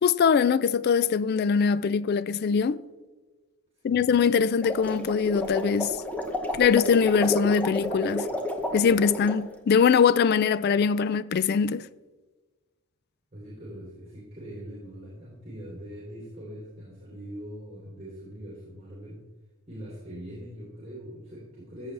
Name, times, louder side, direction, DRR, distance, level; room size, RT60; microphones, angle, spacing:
voice 1, 0.0-2.8 3.8-6.0 6.5-8.3 8.7-11.8, left 6 dB, 45° left, 0.3 m, -22 dB
sound 1, 4.5-9.4, left 1 dB, 5° left, 0.9 m, -31 dB
voice 2, 13.3-19.2 19.7-21.9, equal, 25° right, 3.1 m, -42 dB
14.5 x 7.3 x 3.3 m
head